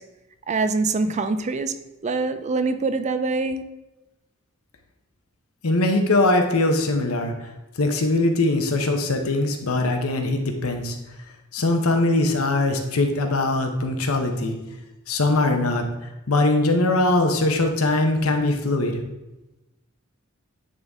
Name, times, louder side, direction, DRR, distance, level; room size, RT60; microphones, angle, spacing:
voice 1, 0.5-1.7 2.0-3.6, right 3 dB, 35° right, 10 dB, 0.4 m, -24 dB
voice 2, 5.6-7.3 7.8-11.0 11.5-14.6 15.1-15.9 16.3-19.0, left 2 dB, 85° left, 4 dB, 1.0 m, -21 dB
10.0 x 4.0 x 3.6 m, 1.0 s
head